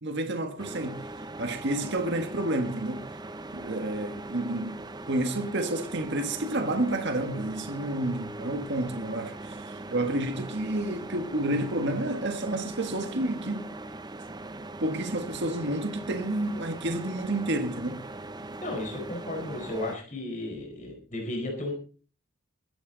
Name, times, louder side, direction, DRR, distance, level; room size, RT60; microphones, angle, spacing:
voice 1, 0.0-1.0 1.4-3.1 3.5-4.8 5.1-13.7 14.8-18.0, right 1 dB, 50° right, 1.6 m, -30 dB
sound 1, 0.6-20.0, right 2 dB, 20° right, 0.7 m, -40 dB
voice 2, 18.6-21.7, left 1 dB, 35° left, 4.6 m, -34 dB
23.0 x 9.9 x 4.0 m
head